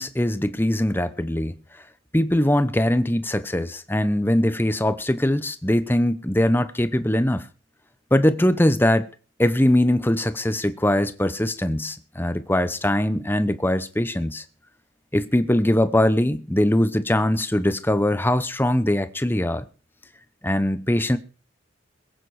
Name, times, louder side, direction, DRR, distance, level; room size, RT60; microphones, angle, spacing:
voice 1, 0.0-1.5 2.1-7.5 8.1-9.1 9.4-14.4 15.1-19.6 20.4-21.2, left 1 dB, 10° left, 0.8 m, -21 dB
21.5 x 8.9 x 4.8 m
head